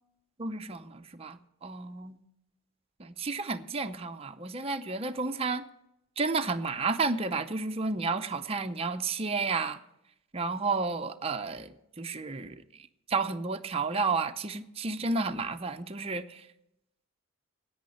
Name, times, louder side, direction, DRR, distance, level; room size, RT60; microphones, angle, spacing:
voice 1, 0.4-2.2 3.0-5.7 6.2-9.8 10.3-12.6 13.1-16.4, right 4 dB, 30° right, 6 dB, 0.6 m, -31 dB
10.5 x 8.6 x 9.7 m, 0.82 s
head